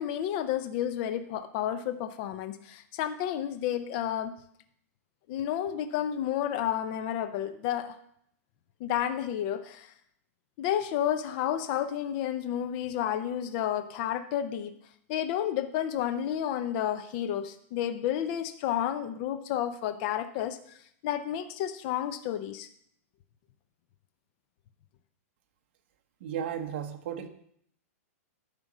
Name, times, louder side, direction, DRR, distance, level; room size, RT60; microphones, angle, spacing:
voice 1, 0.0-4.3 5.3-8.0 8.8-9.9 10.6-14.8 15.1-20.8 21.0-22.7, left 10 dB, 30° left, 10 dB, 0.5 m, -31 dB
voice 2, 26.2-27.3, right 9 dB, 45° right, 6 dB, 1.2 m, -34 dB
11.0 x 5.2 x 7.3 m, 0.68 s
hypercardioid pair, 165°, 8 cm